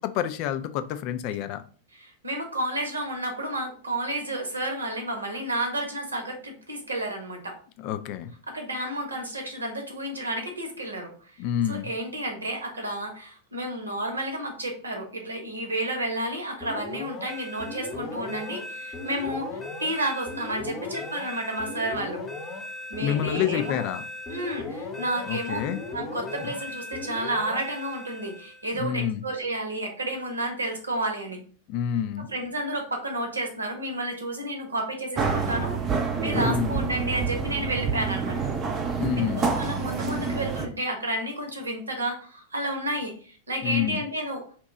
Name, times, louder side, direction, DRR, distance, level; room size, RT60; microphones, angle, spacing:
voice 1, 0.0-1.6 7.8-8.3 11.4-11.9 23.0-24.0 25.3-25.8 26.4-26.5 28.7-29.2 31.7-32.3 36.3-36.8 38.9-39.5 43.6-44.0, left 9 dB, 45° left, 10 dB, 0.3 m, -28 dB
voice 2, 1.9-7.6 8.5-11.3 11.7-22.2 22.9-23.8 24.3-25.6 25.9-31.4 32.2-35.8 36.2-38.4 39.1-44.4, right 1 dB, 75° right, 3 dB, 0.9 m, -31 dB
sound 1, 16.6-28.7, left 2 dB, 20° left, 0.7 m, -37 dB
sound 2, 35.2-40.7, right 5 dB, 25° right, 0.5 m, -27 dB
2.8 x 2.2 x 3.7 m, 0.42 s
figure-of-eight pair, 90°, 0 cm